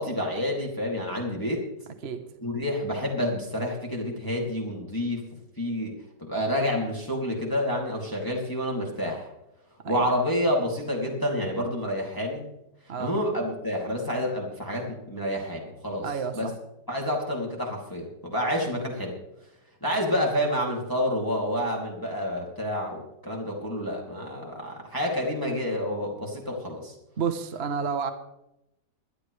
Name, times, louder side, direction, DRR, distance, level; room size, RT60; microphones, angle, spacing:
voice 1, 0.0-1.6 2.4-5.2 5.6-9.3 9.9-12.4 13.0-16.0 16.4-16.5 16.9-19.2 19.8-26.9, equal, 10° left, -2 dB, 2.5 m, -29 dB
voice 2, 16.0-16.5 27.2-28.1, right 6 dB, 40° right, 7 dB, 1.0 m, -30 dB
21.5 x 12.0 x 3.3 m, 0.86 s
omnidirectional pair, 2.1 m